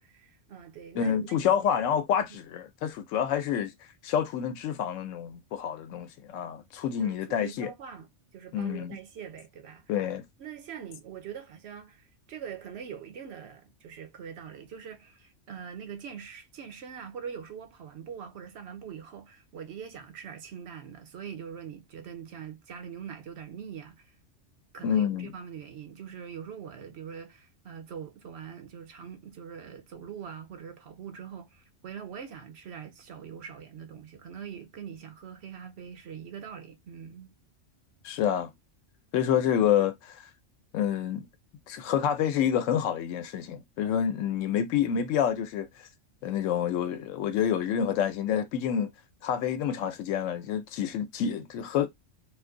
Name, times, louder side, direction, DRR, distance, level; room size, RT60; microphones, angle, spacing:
voice 1, 0.0-1.7 7.0-9.9 10.4-24.1 24.7-37.3, right 7 dB, 65° right, 0.9 m, -43 dB
voice 2, 0.9-3.7 4.0-7.7 8.5-9.0 9.9-10.2 24.8-25.3 38.0-38.5 39.1-40.2 40.7-41.3 41.7-45.9 46.2-48.9 49.2-51.9, left 9 dB, 85° left, 1.0 m, -28 dB
2.5 x 2.4 x 3.6 m
omnidirectional pair, 1.3 m